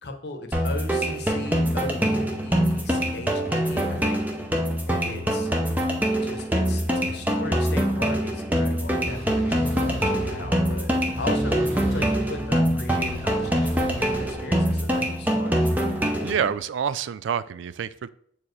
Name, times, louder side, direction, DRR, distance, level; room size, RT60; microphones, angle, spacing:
voice 1, 0.0-4.2 4.9-5.5 6.2-15.7, left 2 dB, 55° left, 5 dB, 0.9 m, -37 dB
sound 1, 0.5-16.5, equal, 10° right, 0.6 m, -24 dB
sound 2, 8.8-14.4, right 1 dB, 30° right, 2.0 m, -35 dB
voice 2, 16.2-18.1, right 7 dB, 75° right, 16 dB, 0.3 m, -27 dB
7.0 x 4.6 x 3.2 m, 0.64 s
head